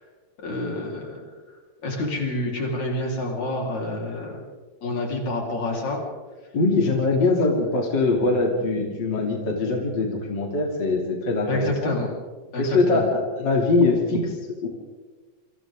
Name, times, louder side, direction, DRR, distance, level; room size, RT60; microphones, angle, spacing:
voice 1, 0.4-1.3 1.8-4.4 4.8-6.0 11.5-12.1 12.5-13.1, left 1 dB, 70° left, -1 dB, 5.6 m, -28 dB
voice 2, 6.5-12.0 12.6-14.7, left 3 dB, 40° left, 0 dB, 3.6 m, -22 dB
28.0 x 26.0 x 3.8 m, 1.4 s
omnidirectional pair, 3.3 m